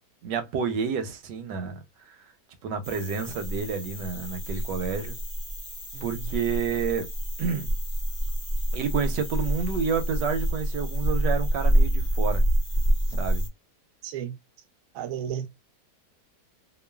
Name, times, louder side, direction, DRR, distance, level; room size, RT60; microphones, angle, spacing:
voice 1, 0.2-2.3 2.6-5.2 6.0-7.1 7.4-7.7 8.7-12.4 13.1-13.5, right 6 dB, 90° right, 1.2 m, -29 dB
sound 1, 2.8-13.5, right 1 dB, 20° left, 0.6 m, -27 dB
voice 2, 14.0-14.3 14.9-15.5, right 9 dB, 65° right, 0.8 m, -33 dB
3.0 x 2.2 x 2.2 m
omnidirectional pair, 1.8 m